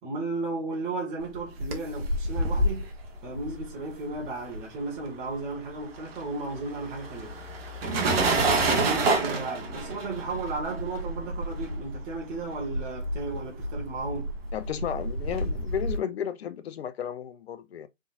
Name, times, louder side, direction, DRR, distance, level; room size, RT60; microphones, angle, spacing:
voice 1, 0.0-2.9 3.2-7.4 8.0-14.3, right 3 dB, 20° right, 1.4 m, -34 dB
sound 1, 1.3-5.0 5.3-16.0, right 2 dB, 50° right, 1.1 m, -29 dB
voice 2, 14.5-17.9, left 9 dB, 55° left, 0.6 m, -33 dB
3.8 x 3.7 x 2.5 m
hypercardioid pair, 140°, 37 cm